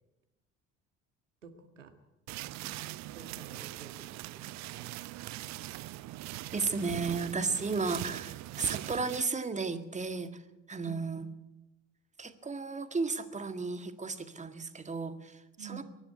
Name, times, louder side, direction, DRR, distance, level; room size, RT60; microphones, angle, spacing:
voice 1, 1.4-1.9 3.1-4.9 10.8-11.2 15.6-15.8, right 7 dB, 80° right, 7 dB, 1.9 m, -50 dB
sound 1, 2.3-9.2, right 16 dB, 50° right, 0.8 m, -41 dB
voice 2, 6.5-10.4 10.7-11.3 12.2-15.8, right 4 dB, 20° right, 9 dB, 1.8 m, -34 dB
23.5 x 11.5 x 9.5 m, 0.94 s
figure-of-eight pair, 60°, 37 cm